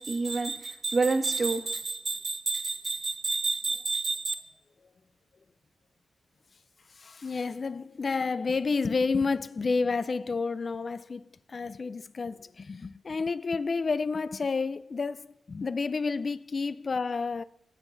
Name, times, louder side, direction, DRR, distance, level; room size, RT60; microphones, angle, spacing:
voice 1, 0.0-4.3, right 3 dB, 45° right, 1.2 m, -29 dB
voice 2, 6.9-17.4, left 4 dB, 50° left, 0.3 m, -30 dB
17.0 x 7.1 x 2.6 m
supercardioid pair, 55°, 0 cm